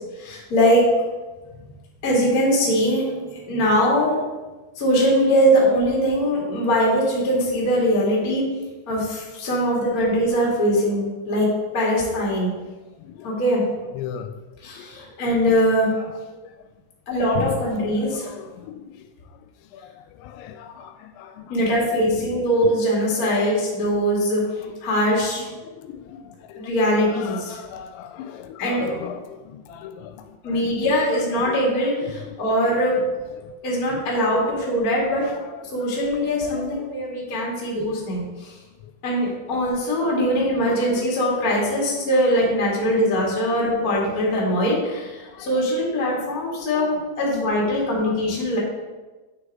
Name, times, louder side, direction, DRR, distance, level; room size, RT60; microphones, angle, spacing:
voice 1, 0.2-0.8 2.0-4.2 4.8-8.5 8.9-11.5 11.7-12.5 13.2-13.6 14.6-15.9 17.1-18.3 21.5-25.4 26.6-27.6 28.6-28.9 30.4-33.0 33.6-35.3 35.7-38.5 39.0-48.6, equal, 45° left, -4 dB, 1.1 m, -21 dB
voice 2, 13.9-14.3 14.8-14.9 16.0-16.1 16.4-16.5 17.4-17.7 18.0-19.1 19.7-21.5 25.6-26.6 27.1-30.6 31.5-31.6 32.0-32.4 33.4-33.5 35.3-35.4 36.5-36.7 40.7-40.9 43.8-43.9 45.2-45.5, left 10 dB, 85° left, 8 dB, 2.8 m, -37 dB
8.9 x 6.8 x 3.6 m, 1.2 s
omnidirectional pair, 5.4 m